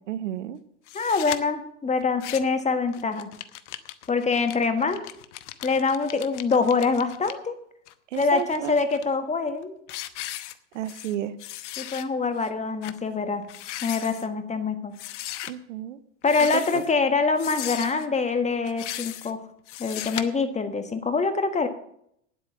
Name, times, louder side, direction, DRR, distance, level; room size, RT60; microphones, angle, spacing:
voice 1, 0.1-0.6 8.1-8.8 10.7-11.3 15.5-16.0 16.7-16.8, right 11 dB, 85° right, 16 dB, 1.0 m, -32 dB
sound 1, 0.9-1.4 2.0-2.6 2.9-7.3 7.9-9.0 9.5-9.6 9.9-11.1 11.4-12.0 12.4-12.5 12.8-13.0 13.4-14.3 15.0-15.5 16.2-16.9 17.4-18.1 18.6-19.3 19.7-20.2, left 14 dB, 75° left, 1.0 m, -37 dB
voice 2, 0.9-3.3 4.1-5.0 5.6-7.6 8.2-9.7 11.8-13.4 13.8-14.9 16.2-19.5 19.8-21.7, left 4 dB, 20° left, 9 dB, 1.6 m, -25 dB
9.9 x 8.2 x 7.2 m, 0.70 s
hypercardioid pair, 100°, 36 cm